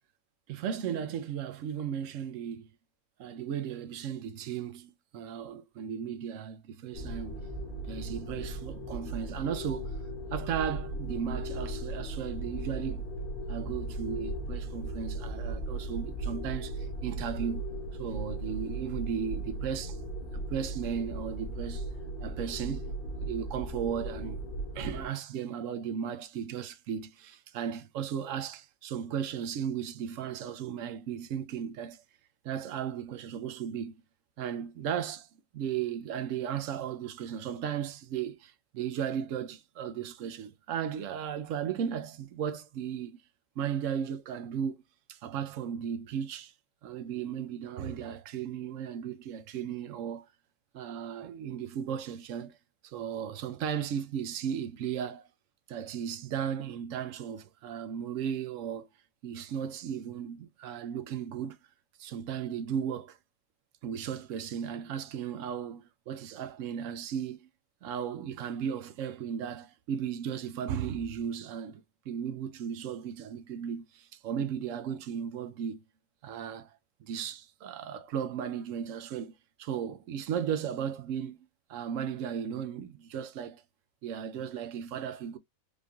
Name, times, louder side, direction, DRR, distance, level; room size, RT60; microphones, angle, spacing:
voice 1, 0.5-2.7 3.2-7.4 7.9-9.9 10.3-13.0 13.5-17.6 18.0-20.0 20.5-21.9 22.2-24.4 24.7-32.0 32.4-33.9 34.4-35.3 35.5-43.2 43.6-44.8 45.1-46.5 46.8-50.3 50.7-52.6 52.8-55.3 55.7-58.9 59.2-61.6 62.0-63.2 63.8-67.5 67.8-75.8 76.2-76.7 77.0-79.3 79.6-83.6 84.0-85.4, right 8 dB, 70° right, 0.9 m, -35 dB
sound 1, 6.9-25.0, right 2 dB, 45° left, 1.3 m, -37 dB
5.2 x 3.3 x 2.3 m
omnidirectional pair, 1.5 m